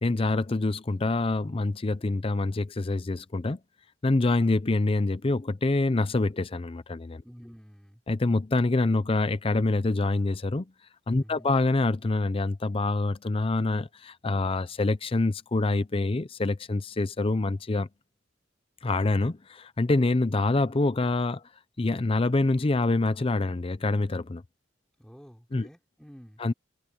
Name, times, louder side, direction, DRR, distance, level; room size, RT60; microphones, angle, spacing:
voice 1, 0.0-3.6 4.0-7.2 8.1-10.6 11.1-17.9 18.8-21.4 21.8-24.4 25.5-25.7 26.4-26.5, left 2 dB, 30° left, 0.5 m, -26 dB
voice 2, 7.2-8.0 11.2-11.5 25.0-26.4, equal, 5° left, 5.5 m, -50 dB
head